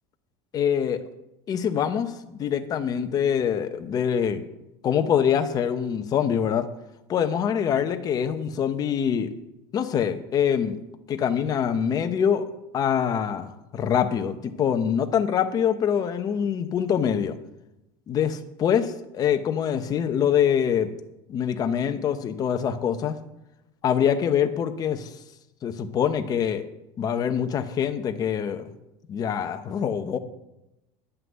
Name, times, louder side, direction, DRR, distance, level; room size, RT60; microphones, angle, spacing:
voice 1, 0.5-1.0 1.5-4.4 4.8-6.7 7.1-9.3 9.7-10.8 11.1-12.4 12.7-17.4 18.1-20.9 21.3-23.2 23.8-25.1 25.6-26.6 27.0-28.7 29.1-30.2, left 8 dB, 30° left, 8 dB, 0.9 m, -24 dB
11.0 x 5.8 x 8.0 m, 0.92 s
cardioid pair, 155°, 13 cm